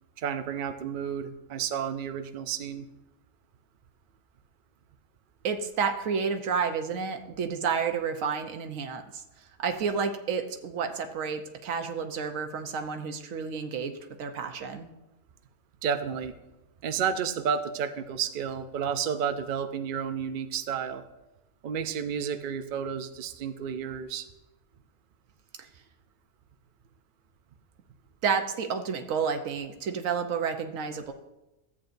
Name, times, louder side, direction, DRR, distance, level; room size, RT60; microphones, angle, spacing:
voice 1, 0.2-2.9 15.8-16.4 16.8-21.0 21.6-24.3, right 7 dB, 55° right, 9 dB, 0.6 m, -31 dB
voice 2, 5.4-9.2 9.6-14.9 25.6-25.7 28.2-31.1, right 6 dB, 90° right, 6 dB, 1.2 m, -30 dB
14.0 x 8.5 x 2.6 m, 0.97 s
omnidirectional pair, 1.3 m